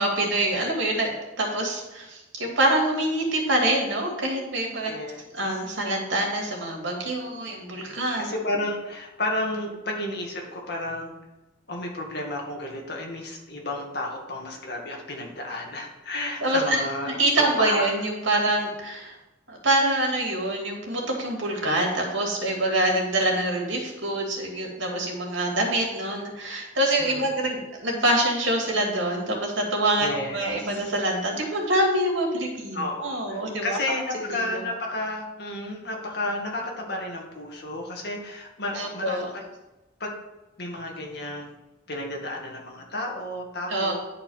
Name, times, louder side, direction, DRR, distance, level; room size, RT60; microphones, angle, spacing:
voice 1, 0.0-4.9 5.3-8.3 16.4-16.8 17.2-19.1 19.5-33.8 34.3-34.6 38.7-39.3 43.7-43.9, right 1 dB, 75° right, 0 dB, 2.6 m, -25 dB
voice 2, 4.8-5.6 7.4-11.1 11.7-17.9 27.0-27.3 30.0-30.9 32.7-39.4 40.0-40.1 40.6-41.5 41.9-44.0, left 1 dB, 60° left, 0 dB, 2.0 m, -32 dB
11.0 x 4.6 x 5.6 m, 1.0 s
head